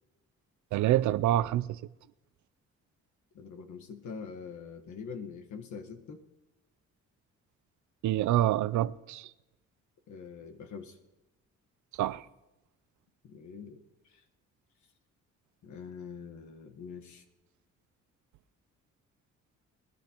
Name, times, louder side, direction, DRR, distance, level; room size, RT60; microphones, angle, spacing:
voice 1, 0.7-1.7 8.0-9.3 12.0-12.2, right 13 dB, 75° right, 0.5 m, -26 dB
voice 2, 3.3-6.2 10.1-11.0 13.2-14.2 15.6-17.2, left 6 dB, 70° left, 1.4 m, -44 dB
20.5 x 11.5 x 3.0 m
cardioid pair, 90°, 30 cm